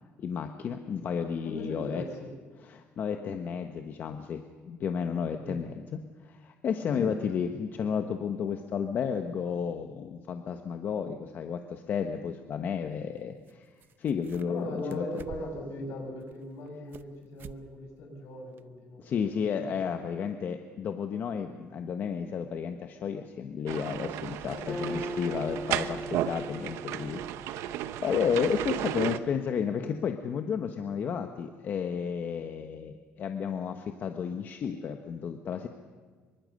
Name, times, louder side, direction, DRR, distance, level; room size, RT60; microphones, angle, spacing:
voice 1, 0.2-2.0 2.6-13.7 14.0-15.1 19.0-35.7, left 7 dB, 45° left, 6 dB, 1.3 m, -32 dB
voice 2, 1.4-2.3 5.3-5.6 6.8-7.1 14.5-19.8 24.5-24.8, left 1 dB, 70° left, 3 dB, 7.0 m, -39 dB
sound 1, 13.4-13.5 13.8-14.6 14.9-15.7 16.2-17.1 17.4-17.6 18.0-18.1 18.6-18.7, right 9 dB, 45° right, 0.8 m, -48 dB
sound 2, 23.7-29.2, right 12 dB, 80° right, 1.0 m, -34 dB
Acoustic guitar, 24.7-28.3, equal, 25° left, 1.5 m, -39 dB
25.5 x 23.5 x 6.7 m, 1.5 s
cardioid pair, 150°, 5 cm